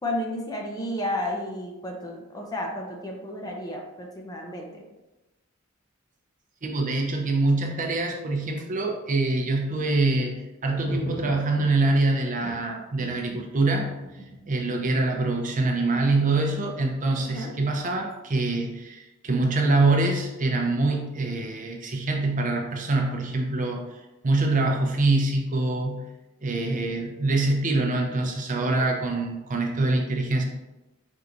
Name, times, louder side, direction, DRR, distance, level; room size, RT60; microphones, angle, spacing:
voice 1, 0.0-4.8 17.2-17.5 20.9-21.0 28.6-28.7, left 1 dB, 20° left, 0 dB, 0.6 m, -32 dB
voice 2, 6.6-13.9 14.5-26.1 26.4-30.4, right 2 dB, 40° right, 1 dB, 0.6 m, -25 dB
sound 1, 10.7-11.7 12.4-12.6 13.0-15.1, right 1 dB, 40° left, 1.2 m, -37 dB
4.6 x 3.9 x 2.5 m, 1.0 s
head